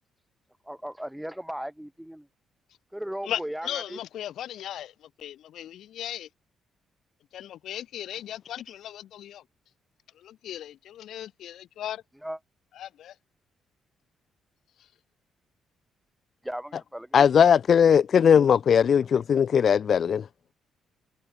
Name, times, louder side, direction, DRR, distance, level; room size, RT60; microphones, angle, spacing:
voice 1, 0.7-2.3 2.9-4.0 12.2-12.4 16.4-17.1, equal, 5° right, 7.2 m, -36 dB
voice 2, 3.2-6.3 7.3-9.4 10.1-12.0 12.7-13.1, left 11 dB, 75° left, 4.0 m, -37 dB
voice 3, 17.1-20.3, left 7 dB, 55° left, 0.8 m, -19 dB
cardioid pair, 90°, 0 cm